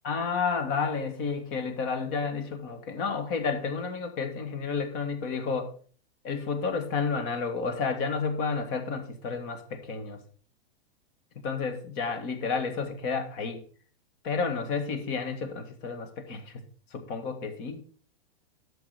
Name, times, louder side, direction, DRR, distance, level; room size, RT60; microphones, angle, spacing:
voice 1, 0.0-5.7 6.2-10.2 11.4-13.6 14.2-16.5 16.9-17.8, left 5 dB, 35° left, 7 dB, 1.7 m, -31 dB
8.5 x 6.9 x 5.0 m, 0.44 s
supercardioid pair, 155°, 31 cm